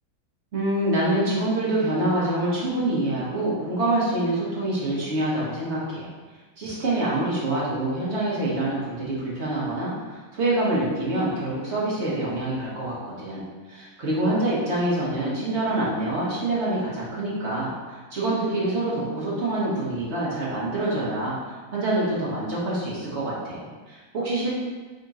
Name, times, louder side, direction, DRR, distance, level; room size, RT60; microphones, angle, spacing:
voice 1, 0.5-6.1 6.6-13.4 13.7-21.3 21.7-24.6, right 1 dB, 40° right, -7 dB, 1.1 m, -26 dB
3.7 x 3.6 x 4.1 m, 1.3 s
omnidirectional pair, 2.3 m